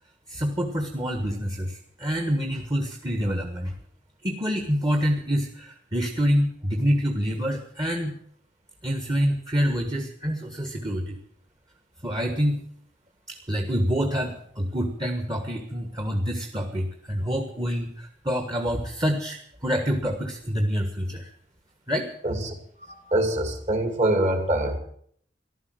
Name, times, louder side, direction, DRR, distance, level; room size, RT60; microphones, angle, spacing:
voice 1, 0.3-3.7 4.2-8.1 8.8-11.2 12.0-12.6 13.3-21.3 21.9-22.1, equal, 20° right, 4 dB, 1.5 m, -27 dB
voice 2, 22.2-22.5 22.9-24.8, right 1 dB, 40° right, 6 dB, 2.6 m, -24 dB
14.5 x 12.0 x 7.7 m, 0.64 s
head